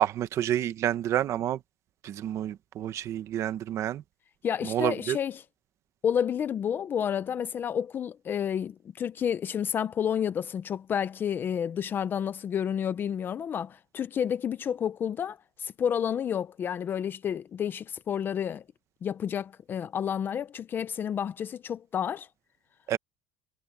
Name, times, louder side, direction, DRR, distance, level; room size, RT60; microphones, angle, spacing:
voice 1, 0.0-1.6 2.0-4.0 4.7-5.2 22.9-23.0, right 11 dB, 35° right, 1.0 m, -28 dB
voice 2, 4.4-5.4 6.0-18.6 19.0-22.3, left 8 dB, 25° left, 0.5 m, -30 dB
cardioid pair, 170°, 8 cm